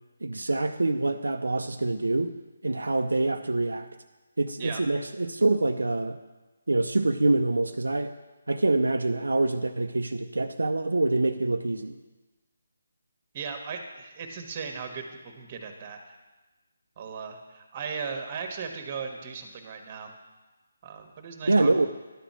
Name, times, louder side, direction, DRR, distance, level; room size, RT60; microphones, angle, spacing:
voice 1, 0.2-2.3 2.6-3.9 4.4-6.2 6.7-8.1 8.5-12.0 21.5-21.9, right 2 dB, 85° right, 6 dB, 0.5 m, -25 dB
voice 2, 13.3-16.1 17.0-20.1 20.8-21.9, right 5 dB, 30° right, 5 dB, 1.3 m, -37 dB
11.0 x 5.1 x 7.3 m, 1.2 s
figure-of-eight pair, 155°, 0 cm